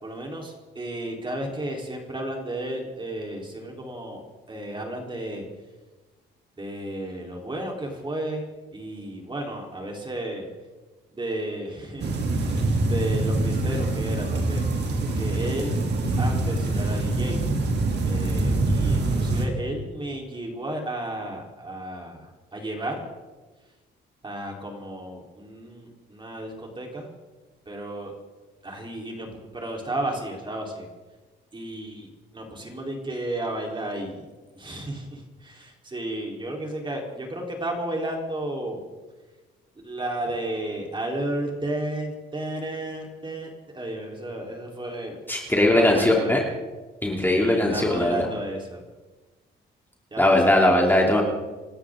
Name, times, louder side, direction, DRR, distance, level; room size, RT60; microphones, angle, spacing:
voice 1, 0.0-4.2 4.5-5.4 6.6-8.4 8.7-10.5 11.1-12.5 12.9-14.6 15.0-15.8 16.2-17.4 18.0-22.2 22.5-23.0 24.2-27.1 27.7-28.1 28.6-29.3 29.5-30.9 31.5-34.3 34.6-38.8 39.8-45.2 45.6-46.5 47.3-48.8 50.1-50.2 50.5-50.7, right 1 dB, 25° right, 0 dB, 4.0 m, -33 dB
sound 1, 12.0-19.5, right 2 dB, 60° right, 2.9 m, -24 dB
voice 2, 45.3-46.4 47.0-48.3 50.2-51.2, left 1 dB, 10° left, -1 dB, 3.0 m, -20 dB
27.0 x 13.0 x 3.9 m, 1.3 s
cardioid pair, 90°, 20 cm